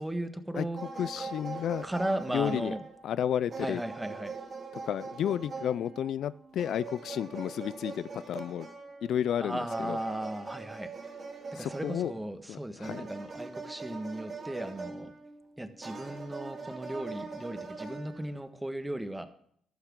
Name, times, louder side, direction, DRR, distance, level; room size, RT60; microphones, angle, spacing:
voice 1, 0.0-0.8 1.2-1.3 1.8-2.8 3.6-4.3 9.4-10.9 11.5-15.1 15.6-19.3, right 1 dB, 10° right, 8 dB, 1.5 m, -36 dB
sound 1, 0.8-3.2 3.5-9.1 9.7-12.2 12.8-15.4 15.8-18.4, right 4 dB, 45° right, 3.5 m, -42 dB
voice 2, 1.0-1.8 2.3-2.7 3.0-3.8 4.9-8.7 9.0-10.0 11.6-12.1 12.5-13.0, left 10 dB, 70° left, 18 dB, 0.4 m, -32 dB
15.0 x 11.5 x 3.7 m, 0.65 s
cardioid pair, 90°, 0 cm